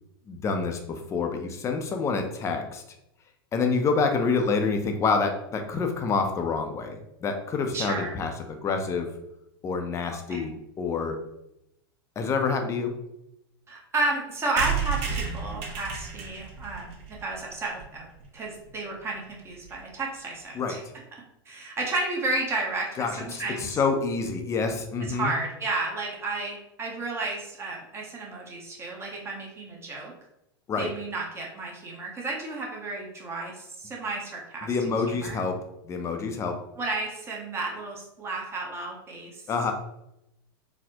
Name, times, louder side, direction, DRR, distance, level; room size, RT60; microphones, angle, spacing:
voice 1, 0.3-2.8 3.5-9.1 9.6-11.2 12.2-13.0 20.5-20.8 23.0-25.3 30.7-30.9 34.6-35.6 35.8-36.6 39.5-39.7, left 4 dB, 25° left, 5 dB, 0.5 m, -27 dB
voice 2, 7.7-8.1 10.3-10.5 13.7-18.1 18.3-20.8 21.5-22.9 23.2-23.7 25.1-30.1 30.8-34.7 35.1-35.4 36.8-39.4, right 2 dB, 20° right, -1 dB, 0.7 m, -32 dB
sound 1, 14.6-18.2 18.7-18.8 19.0-19.1 19.3-19.4 19.6-19.8, right 6 dB, 50° right, 0.9 m, -32 dB
4.1 x 2.1 x 2.8 m, 0.84 s
hypercardioid pair, 120°, 13 cm